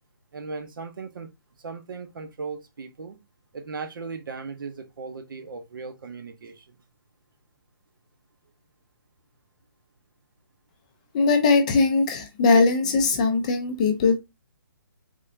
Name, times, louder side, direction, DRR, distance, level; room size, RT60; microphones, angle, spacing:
voice 1, 0.3-1.3 1.6-3.2 3.5-6.8, right 4 dB, 65° right, 0.8 m, -37 dB
voice 2, 11.1-14.2, left 4 dB, 20° left, 0.4 m, -20 dB
3.6 x 2.5 x 3.2 m
hypercardioid pair, 165°, 12 cm